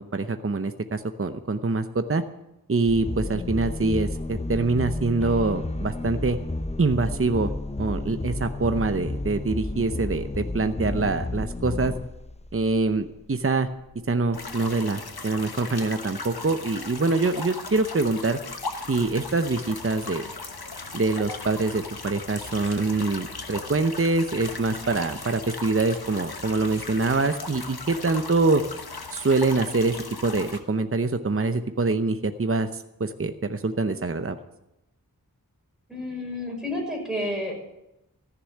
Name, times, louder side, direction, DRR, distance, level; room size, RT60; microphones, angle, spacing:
voice 1, 0.0-2.2 2.7-6.4 6.8-7.5 7.8-11.9 12.5-13.7 14.1-18.4 18.9-20.3 20.9-28.6 29.1-30.0 30.2-34.4, right 3 dB, 35° right, 9 dB, 0.8 m, -25 dB
sound 1, 2.9-13.1, left 2 dB, 20° left, 0.6 m, -31 dB
sound 2, 14.3-30.6, left 3 dB, 80° left, 1.2 m, -37 dB
voice 2, 35.9-37.6, left 1 dB, ahead, -2 dB, 6.0 m, -30 dB
14.5 x 6.9 x 9.2 m, 0.90 s
wide cardioid pair, 40°, 37 cm